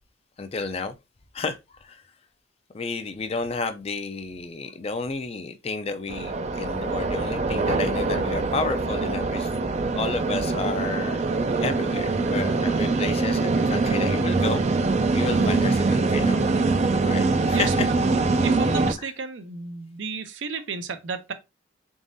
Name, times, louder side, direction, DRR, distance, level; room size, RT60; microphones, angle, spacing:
voice 1, 0.4-0.9 1.3-2.0 2.7-9.5 9.9-11.2 11.6-14.6 15.1-16.4 17.0-17.9 19.0-19.1, left 4 dB, 30° left, 0.4 m, -31 dB
sound 1, 6.1-18.9, right 3 dB, 35° right, 0.3 m, -23 dB
voice 2, 17.5-17.9 18.4-21.3, right 5 dB, 75° right, 0.6 m, -33 dB
4.0 x 3.6 x 2.6 m
head